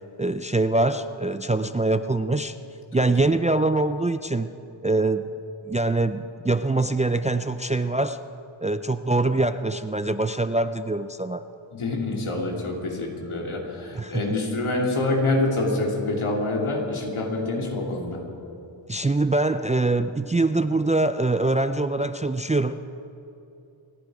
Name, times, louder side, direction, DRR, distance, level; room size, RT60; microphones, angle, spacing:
voice 1, 0.2-2.5 2.9-4.5 4.8-5.3 5.7-8.2 8.6-11.4 13.9-14.4 18.9-22.8, right 2 dB, 15° right, 10 dB, 0.4 m, -24 dB
voice 2, 11.7-18.2, left 2 dB, 75° left, -1 dB, 2.9 m, -26 dB
28.0 x 10.5 x 4.9 m, 2.7 s
wide cardioid pair, 70°, 50 cm